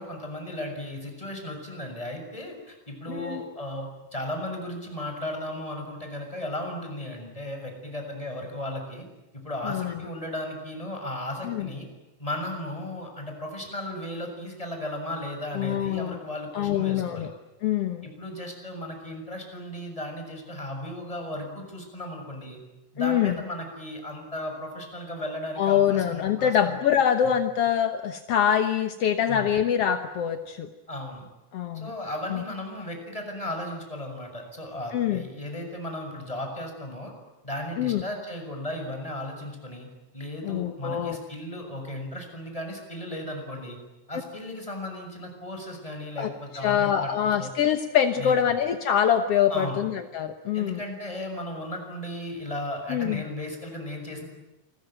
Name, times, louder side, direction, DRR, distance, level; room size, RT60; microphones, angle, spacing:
voice 1, 0.0-9.0 9.3-11.9 12.2-17.3 18.0-22.6 22.9-26.8 27.2-27.3 29.3-29.5 30.9-31.2 31.7-37.1 37.4-39.9 40.1-43.8 44.1-47.1 47.4-47.5 48.2-48.6 49.5-49.8 50.5-54.3, left 1 dB, 10° left, 3 dB, 6.7 m, -35 dB
voice 2, 3.1-3.4 9.6-9.9 11.4-11.7 15.5-16.2 16.5-17.3 17.6-18.1 23.0-23.4 25.6-30.7 31.5-31.9 32.3-32.4 34.9-35.2 37.8-38.0 40.4-41.2 46.2-46.3 46.6-50.8 52.9-53.2, left 9 dB, 65° left, 7 dB, 1.5 m, -24 dB
28.5 x 22.0 x 9.1 m, 1.0 s
omnidirectional pair, 4.3 m